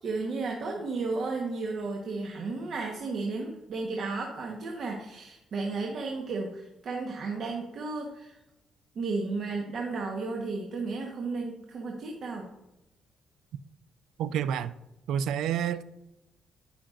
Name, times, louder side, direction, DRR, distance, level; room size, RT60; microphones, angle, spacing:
voice 1, 0.0-8.4 8.9-12.5, right 3 dB, 60° right, 1.2 m, -33 dB
voice 2, 14.2-14.8 15.1-15.8, right 9 dB, 85° right, 0.4 m, -29 dB
13.0 x 5.7 x 2.6 m
cardioid pair, 90°, 0 cm